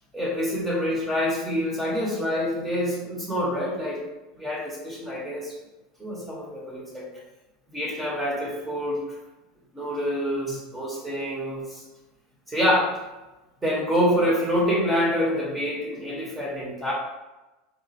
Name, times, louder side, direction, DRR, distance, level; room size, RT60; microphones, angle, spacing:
voice 1, 0.1-4.0 4.3-5.6 6.0-7.1 7.7-9.0 9.7-11.8 12.5-13.0 13.6-16.9, equal, 10° right, -4 dB, 1.0 m, -26 dB
4.1 x 2.1 x 4.0 m, 1.1 s
supercardioid pair, 150°, 0 cm